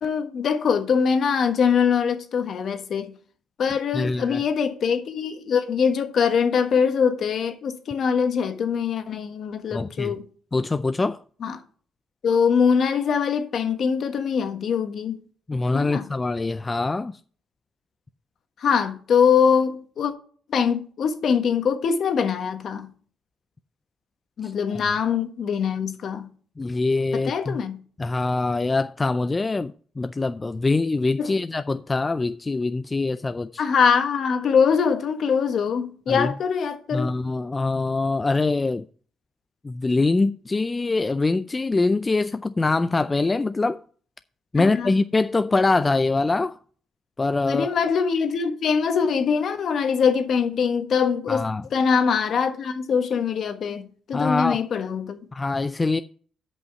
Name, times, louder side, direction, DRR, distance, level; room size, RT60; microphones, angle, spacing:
voice 1, 0.0-3.1 3.6-10.3 11.4-11.6 12.2-15.1 15.7-16.1 18.6-20.1 20.5-22.9 24.4-26.3 27.1-27.8 31.2-31.3 33.6-37.1 44.5-44.9 47.5-51.4 51.7-55.2, left 6 dB, 60° left, 1.4 m, -23 dB
voice 2, 3.9-4.4 9.7-10.1 10.5-11.2 15.5-17.2 24.4-24.5 26.6-27.6 28.0-33.6 36.1-36.3 36.9-38.9 39.6-43.8 44.5-46.6 47.2-47.7 51.3-51.6 54.1-54.6 55.3-56.0, left 3 dB, 25° left, 0.4 m, -24 dB
8.2 x 5.4 x 6.7 m
cardioid pair, 90°, 0 cm